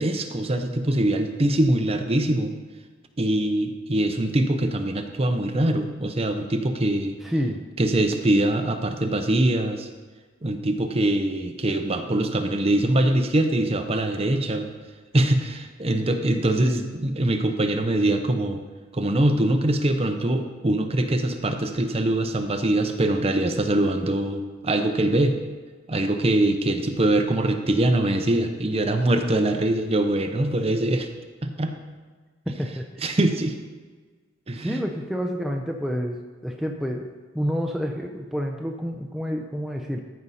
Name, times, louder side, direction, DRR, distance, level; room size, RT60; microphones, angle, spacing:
voice 1, 0.0-2.5 3.2-7.2 7.8-9.9 10.4-14.7 15.1-18.6 18.9-25.4 25.9-31.1 31.4-31.7 33.0-33.5 34.5-34.8, right 1 dB, 30° right, 6 dB, 0.7 m, -23 dB
voice 2, 7.2-7.6 16.6-16.9 32.5-33.1 34.5-37.1 37.3-40.0, equal, ahead, 1 dB, 0.5 m, -28 dB
14.0 x 5.5 x 4.2 m, 1.4 s
head